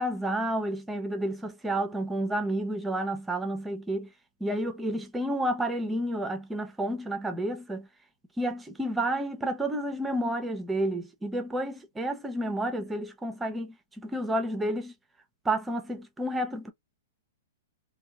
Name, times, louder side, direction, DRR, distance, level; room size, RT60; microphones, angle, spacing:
voice 1, 0.0-4.1 4.4-7.9 8.4-14.9 15.4-16.7, right 1 dB, 10° right, 0.6 m, -30 dB
2.9 x 2.2 x 2.3 m
hypercardioid pair, 140°, 0 cm